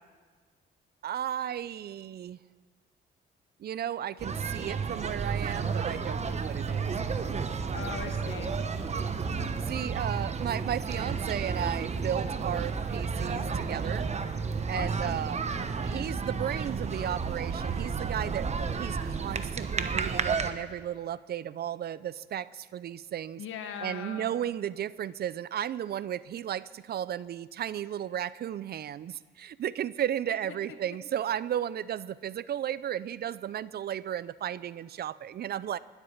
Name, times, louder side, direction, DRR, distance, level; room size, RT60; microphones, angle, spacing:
voice 1, 1.0-2.4 3.6-6.9 9.7-14.1 14.7-15.4 15.8-18.5 18.8-23.4 23.8-35.8, right 10 dB, 55° right, 18 dB, 0.5 m, -34 dB
sound 1, 4.2-20.5, right 5 dB, 35° right, 1.0 m, -32 dB
voice 2, 7.7-8.5 14.7-15.2 23.4-24.3, left 7 dB, 80° left, 6 dB, 1.7 m, -39 dB
20.5 x 8.2 x 7.2 m, 1.5 s
cardioid pair, 90°, 20 cm